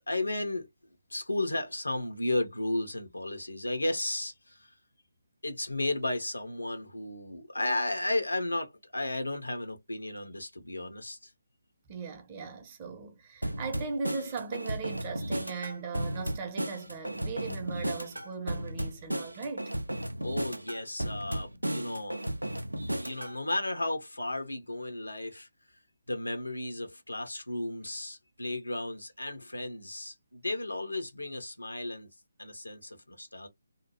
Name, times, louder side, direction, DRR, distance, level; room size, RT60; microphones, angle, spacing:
voice 1, 0.1-0.7 1.1-4.7 5.4-11.3 20.2-22.2 23.0-25.5 26.1-32.1 32.4-33.5, left 2 dB, 85° left, 1.0 m, -34 dB
voice 2, 11.9-19.7, right 4 dB, 30° right, 0.7 m, -38 dB
sound 1, 13.4-23.4, right 1 dB, 90° right, 0.5 m, -34 dB
2.8 x 2.3 x 2.9 m
figure-of-eight pair, 145°, 0 cm